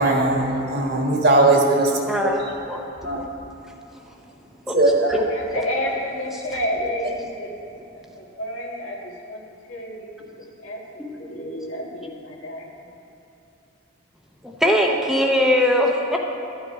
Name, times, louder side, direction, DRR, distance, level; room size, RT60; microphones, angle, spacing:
voice 1, 0.0-1.9 3.0-3.2 4.7-5.2, right 2 dB, 50° right, 1 dB, 1.4 m, -18 dB
voice 2, 2.1-2.8 3.1-3.3 4.7-4.8 5.1-5.5 14.4-16.2, equal, ahead, 0 dB, 0.7 m, -21 dB
voice 3, 5.1-7.5 7.9-9.4 9.7-12.8, equal, 80° left, -2 dB, 1.9 m, -31 dB
12.5 x 8.8 x 4.8 m, 2.9 s
head